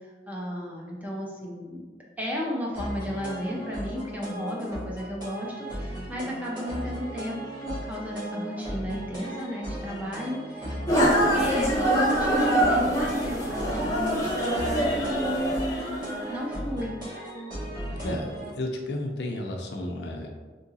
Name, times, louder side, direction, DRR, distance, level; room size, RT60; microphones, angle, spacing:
voice 1, 0.3-1.8 2.2-16.9, left 1 dB, 10° right, -3 dB, 0.5 m, -33 dB
sound 1, 2.7-18.5, right 1 dB, 25° right, 1.2 m, -36 dB
sound 2, 10.9-16.4, right 1 dB, 20° left, 0.9 m, -25 dB
voice 2, 18.0-20.3, left 1 dB, 65° left, 2 dB, 0.5 m, -32 dB
3.7 x 2.8 x 2.7 m, 1.4 s
head